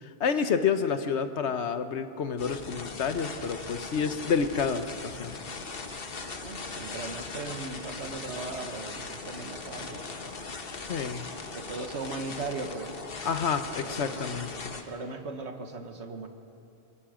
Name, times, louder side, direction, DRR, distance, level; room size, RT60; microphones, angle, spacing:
voice 1, 0.0-5.3 10.9-11.3 13.2-14.5, left 6 dB, 80° left, 10 dB, 1.3 m, -29 dB
sound 1, 2.4-14.8, left 4 dB, 60° left, 1.4 m, -39 dB
voice 2, 6.4-10.2 11.5-12.9 13.8-16.3, right 3 dB, 80° right, 6 dB, 1.7 m, -38 dB
24.0 x 22.0 x 5.0 m, 2.6 s
omnidirectional pair, 1.1 m